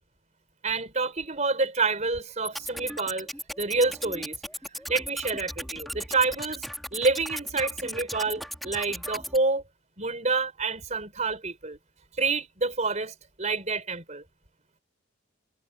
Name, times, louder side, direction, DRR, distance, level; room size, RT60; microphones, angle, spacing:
voice 1, 0.6-3.3 3.6-4.4 4.9-6.7 6.9-9.6 10.0-11.8 12.2-14.2, right 3 dB, 35° right, 4.7 m, -28 dB
sound 1, 2.4-9.4, equal, ahead, 2.6 m, -37 dB
head